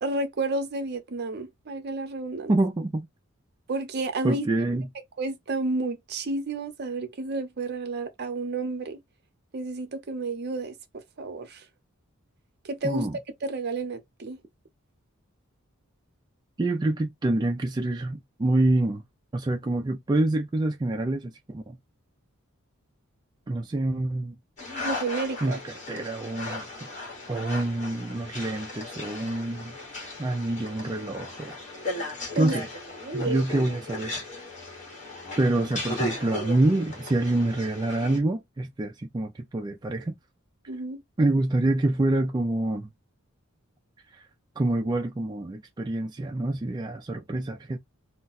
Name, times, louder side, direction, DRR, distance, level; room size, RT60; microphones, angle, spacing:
voice 1, 0.0-2.5 3.7-4.5 5.2-9.0 9.5-11.6 12.6-13.1 13.4-14.4 24.8-25.6 32.3-32.5 33.0-33.4 40.7-41.0, right 2 dB, 50° right, 0.7 m, -31 dB
voice 2, 2.5-3.1 4.2-4.9 12.8-13.2 16.6-19.0 19.3-21.8 23.5-24.3 25.4-25.6 25.9-26.7 27.3-29.7 30.2-31.6 32.4-32.7 33.1-34.3 35.4-40.1 41.2-42.9 44.1-44.2 44.6-47.8, right 2 dB, 20° right, 0.3 m, -26 dB
sound 1, 24.6-38.2, left 2 dB, 35° left, 1.3 m, -37 dB
2.4 x 2.2 x 3.9 m
head